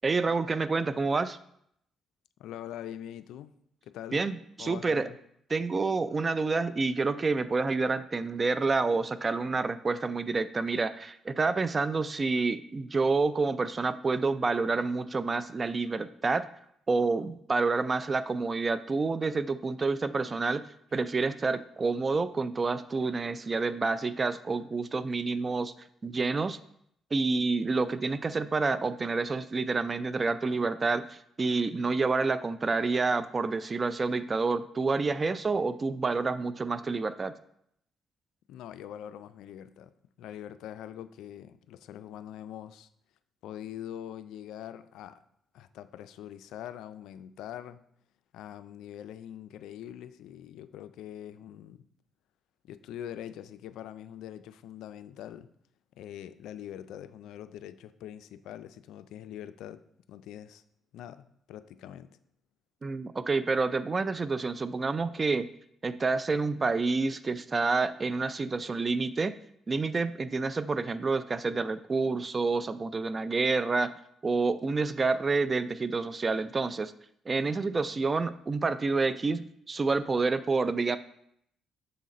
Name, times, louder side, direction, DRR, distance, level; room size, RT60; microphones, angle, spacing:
voice 1, 0.0-1.4 4.1-5.1 5.5-16.5 16.9-20.6 20.9-25.7 26.0-26.6 27.1-37.3 62.8-65.5 65.8-69.4 69.7-73.9 74.2-76.9 77.3-81.0, right 4 dB, 30° right, 13 dB, 0.4 m, -28 dB
voice 2, 2.4-3.5 3.8-4.2 4.6-5.2 38.5-39.9 40.2-42.9 43.4-45.2 45.5-47.8 48.3-51.9 52.6-55.5 56.0-59.8 60.1-60.6 60.9-62.1, left 11 dB, 85° left, 12 dB, 0.3 m, -43 dB
6.6 x 3.9 x 4.1 m, 0.71 s
cardioid pair, 90°, 0 cm